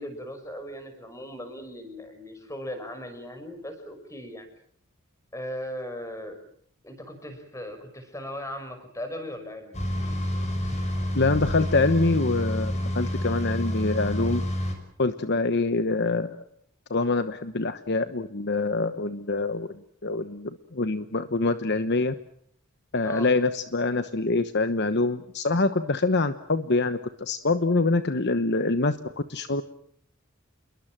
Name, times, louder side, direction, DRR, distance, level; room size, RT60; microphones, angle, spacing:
voice 1, 0.0-4.5 5.3-6.4 6.8-9.8 23.0-23.3, left 1 dB, 15° left, 7 dB, 5.8 m, -38 dB
sound 1, 9.7-14.7, equal, 35° left, 5.9 m, -28 dB
voice 2, 11.1-14.4 15.0-16.4 16.9-22.1 22.9-29.0 29.3-29.6, left 3 dB, 55° left, 11 dB, 1.1 m, -25 dB
28.0 x 22.0 x 7.5 m, 0.64 s
head